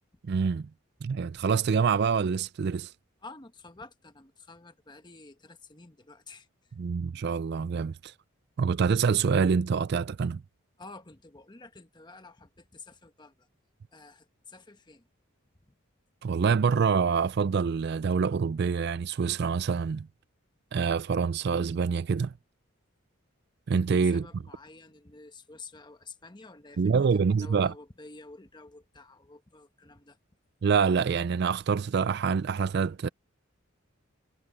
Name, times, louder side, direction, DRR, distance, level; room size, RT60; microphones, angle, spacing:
voice 1, 0.2-0.7 1.0-2.9 6.8-8.1 8.6-10.4 16.2-20.1 20.7-22.3 23.7-24.2 26.8-27.7 30.6-33.1, right 5 dB, 50° right, 0.4 m, -26 dB
voice 2, 3.2-7.0 10.8-13.5 13.9-15.1 15.6-15.7 23.9-30.2, left 3 dB, 20° left, 1.1 m, -50 dB
head